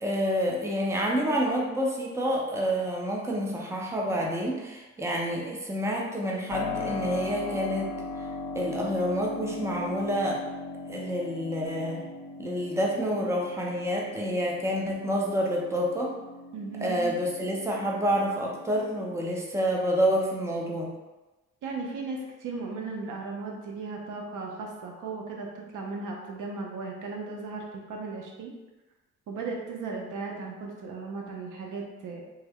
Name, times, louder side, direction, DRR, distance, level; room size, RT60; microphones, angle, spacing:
voice 1, 0.0-7.9 8.5-10.4 10.9-12.0 12.4-16.1 16.8-20.9, equal, 10° right, -1 dB, 0.6 m, -28 dB
Keyboard (musical), 6.5-19.2, left 3 dB, 80° left, 0.5 m, -39 dB
voice 2, 16.5-17.1 21.6-28.5 29.3-32.2, right 3 dB, 80° right, 0 dB, 0.7 m, -36 dB
3.4 x 2.1 x 3.5 m, 1.1 s
cardioid pair, 90°, 31 cm